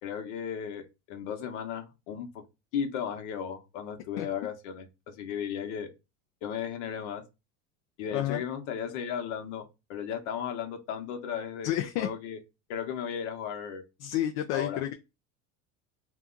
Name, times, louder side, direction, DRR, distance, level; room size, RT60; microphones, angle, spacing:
voice 1, 0.0-2.3 2.7-5.9 6.4-7.2 8.0-11.7 12.0-12.4 12.7-13.8 14.5-14.8, left 8 dB, 80° left, 1.0 m, -35 dB
voice 2, 11.6-12.1 14.0-14.9, left 12 dB, 60° left, 0.5 m, -30 dB
2.7 x 2.3 x 3.7 m
cardioid pair, 155°, 35 cm